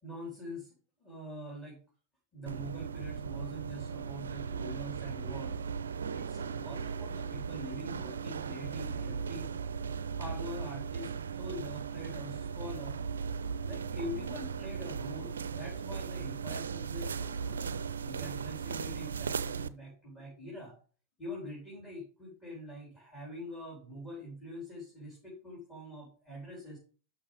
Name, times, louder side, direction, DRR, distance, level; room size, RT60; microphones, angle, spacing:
voice 1, 0.0-0.7 1.0-1.8 2.3-5.6 6.1-9.5 10.2-13.0 13.6-17.7 18.0-20.8 21.2-26.8, left 1 dB, 20° left, -4 dB, 4.1 m, -44 dB
sound 1, 2.5-19.7, right 6 dB, 70° right, 0.4 m, -37 dB
12.0 x 5.6 x 3.4 m, 0.40 s
figure-of-eight pair, 90°, 0 cm